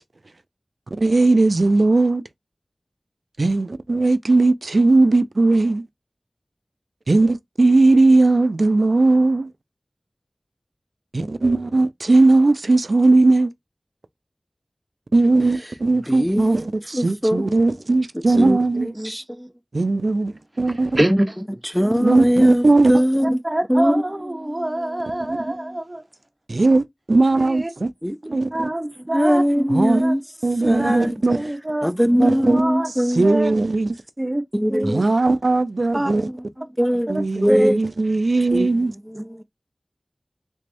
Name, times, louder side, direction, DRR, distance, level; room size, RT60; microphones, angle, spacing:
voice 1, 1.0-2.2 3.4-5.9 7.1-9.5 11.1-13.5 15.1-18.9 19.7-21.0 22.0-22.9 25.3-25.4 26.5-27.9 28.3-28.7 29.7-30.0 30.4-31.4 32.2-32.6 33.1-33.9 34.8-36.3 37.1-38.9, right 2 dB, 80° right, 0.3 m, -18 dB
voice 2, 16.1-16.6 16.9-17.6 18.3-19.5 21.1-21.2 21.7-23.4 23.7-25.8 28.0-28.4 29.1-30.2 30.6-31.2 31.8-33.3 34.5-35.1 36.0-36.3 36.8-37.8 38.5-38.7 39.1-39.4, equal, ahead, 0.3 m, -21 dB
voice 3, 21.0-21.3 23.4-26.0 27.3-27.7 28.2-29.4 29.9-30.2 30.8-31.0 31.3-31.9 32.2-32.9 33.2-33.5 34.2-34.4 34.7-35.1 35.9-36.1 37.5-37.7 39.1-39.2, right 1 dB, 30° right, 0.7 m, -25 dB
3.4 x 3.2 x 2.5 m
wide cardioid pair, 55°, 0 cm